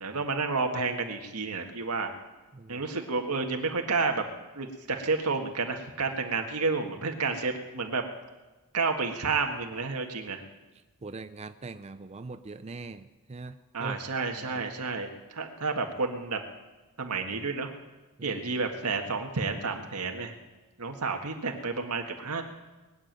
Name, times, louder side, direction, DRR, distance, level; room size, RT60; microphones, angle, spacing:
voice 1, 0.0-2.1 2.7-4.3 4.6-8.0 8.7-10.4 13.7-16.4 17.0-17.7 18.2-20.3 20.8-22.4, right 4 dB, 90° right, 4 dB, 1.7 m, -30 dB
voice 2, 2.5-2.9 11.0-14.0 14.3-14.6 18.2-18.4, right 3 dB, 30° right, 10 dB, 0.5 m, -42 dB
21.0 x 7.2 x 9.2 m, 1.2 s
head